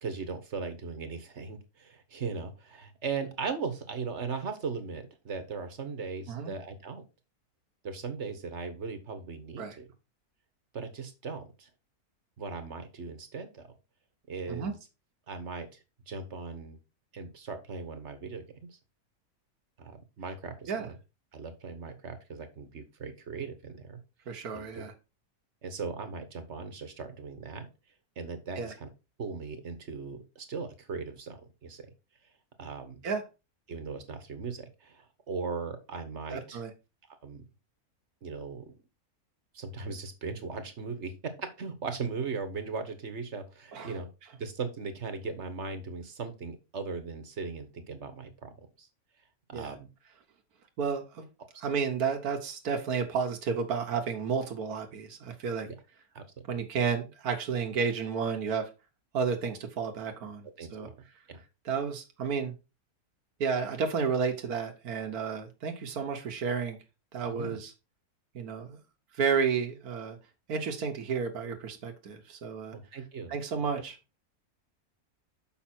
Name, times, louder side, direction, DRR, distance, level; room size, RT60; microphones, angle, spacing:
voice 1, 0.0-7.0 7.8-9.9 10.7-11.7 12.4-13.7 14.3-14.8 15.3-16.8 17.1-18.8 19.8-21.0 21.3-24.0 24.3-24.9 25.6-27.7 28.2-28.9 29.2-31.9 32.6-33.0 33.7-36.6 37.2-37.4 38.2-38.8 39.5-44.1 44.4-48.9 49.5-49.9 55.6-55.7 56.1-56.2 60.6-60.9 61.3-61.4 67.2-67.6 72.7-73.3, right 4 dB, 50° right, 9 dB, 1.4 m, -38 dB
voice 2, 24.3-24.9 28.6-28.7 33.0-33.2 36.3-36.7 43.7-43.9 49.5-49.7 50.8-51.3 51.6-55.7 56.5-58.7 59.1-60.9 61.7-62.5 63.4-66.8 67.1-67.7 68.4-68.8 69.1-70.2 70.5-72.8 73.3-74.0, right 6 dB, 80° right, 4 dB, 1.6 m, -31 dB
7.2 x 5.5 x 4.3 m, 0.28 s
omnidirectional pair, 1.6 m